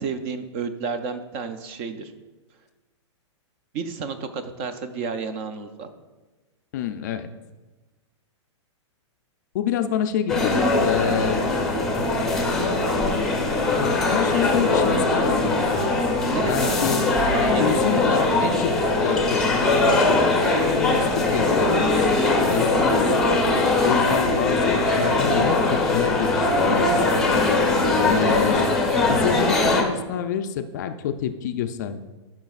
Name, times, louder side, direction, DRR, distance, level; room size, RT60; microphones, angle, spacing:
voice 1, 0.0-2.1 3.7-5.9 16.3-16.9 17.5-17.8 18.1-18.2, right 5 dB, 30° right, 9 dB, 0.5 m, -31 dB
voice 2, 6.7-7.3 9.5-11.4 13.8-15.9 16.5-17.0 17.4-23.1 23.7-27.1 28.0-28.7 29.0-32.0, left 9 dB, 35° left, 9 dB, 0.4 m, -28 dB
sound 1, 10.3-29.8, left 2 dB, ahead, 0.8 m, -21 dB
13.0 x 5.8 x 2.4 m, 1.2 s
hypercardioid pair, 160°, 16 cm